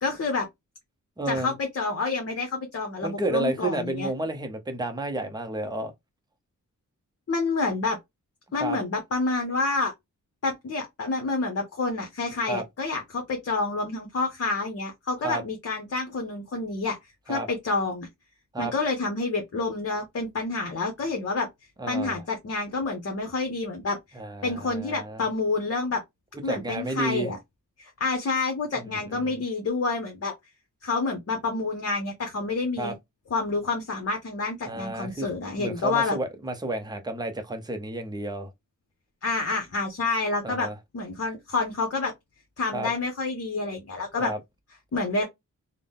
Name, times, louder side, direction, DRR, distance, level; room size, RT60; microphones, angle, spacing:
voice 1, 0.0-0.5 1.3-4.1 7.3-8.0 8.5-9.9 10.4-17.0 17.3-18.1 18.6-21.5 21.9-24.0 24.4-26.0 26.4-27.4 27.8-30.3 30.8-32.9 33.3-36.2 39.2-42.1 42.6-44.3 44.9-45.2, left 3 dB, 50° left, 0.9 m, -28 dB
voice 2, 1.2-1.5 3.0-5.9 8.6-8.8 12.5-12.6 15.2-15.4 17.3-17.5 18.5-18.7 21.8-22.2 24.1-25.2 26.5-27.3 28.7-29.4 32.8-33.0 34.7-35.3 35.6-38.5 40.4-40.7 42.7-42.9 44.2-44.4, right 2 dB, 15° right, 0.6 m, -31 dB
3.9 x 2.1 x 3.5 m
wide cardioid pair, 155°, 32 cm